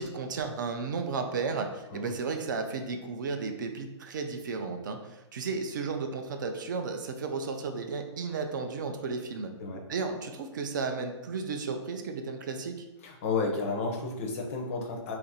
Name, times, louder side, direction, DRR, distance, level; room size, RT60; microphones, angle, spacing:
voice 1, 0.0-9.5 9.9-12.8, right 4 dB, 40° right, 6 dB, 0.4 m, -34 dB
voice 2, 13.0-15.2, left 4 dB, 25° left, 1 dB, 0.5 m, -32 dB
2.9 x 2.5 x 4.1 m, 1.0 s
hypercardioid pair, 170°, 16 cm